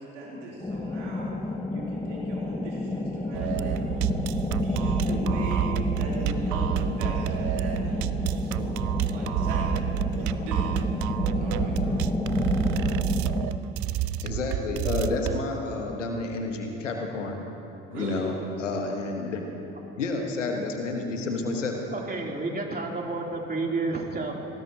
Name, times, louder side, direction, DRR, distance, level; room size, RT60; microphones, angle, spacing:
voice 1, 0.0-1.4 1.7-3.8 4.4-8.1 8.4-8.8 9.1-9.9 10.2-10.9 11.4-11.8 17.9-18.2, right 1 dB, 80° right, -4 dB, 3.5 m, -39 dB
sound 1, 0.6-13.5, left 2 dB, 10° left, 1.4 m, -30 dB
sound 2, 3.3-15.4, right 11 dB, 55° right, 0.6 m, -29 dB
voice 2, 14.2-17.4 17.9-18.3 18.6-19.4 20.0-21.8, left 3 dB, 85° left, 3 dB, 1.5 m, -30 dB
voice 3, 21.9-24.4, right 3 dB, 25° right, -1 dB, 3.3 m, -30 dB
25.0 x 18.5 x 2.9 m, 2.9 s
figure-of-eight pair, 50°, 36 cm